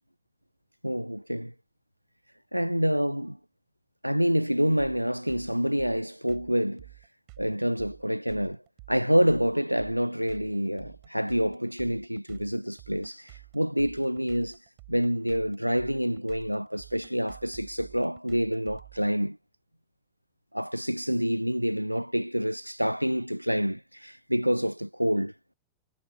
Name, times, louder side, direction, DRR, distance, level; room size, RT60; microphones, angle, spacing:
voice 1, 0.8-1.5 2.5-3.4 4.0-6.9 7.4-8.6 8.9-14.6 14.9-19.4 20.5-25.3, equal, 90° right, 0.6 m, -27 dB
sound 1, 4.8-19.1, right 29 dB, 45° right, 5.2 m, -50 dB
figure-of-eight pair, 90°, 0 cm